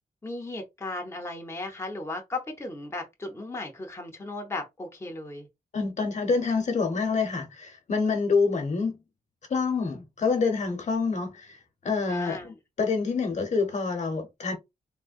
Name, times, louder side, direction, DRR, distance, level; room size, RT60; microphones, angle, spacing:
voice 1, 0.2-5.5 12.1-12.5, left 2 dB, 15° left, 0.6 m, -36 dB
voice 2, 5.7-9.0 9.5-11.6 11.8-14.6, left 4 dB, 50° left, 0.9 m, -27 dB
3.6 x 2.1 x 2.5 m
wide cardioid pair, 110°, 15 cm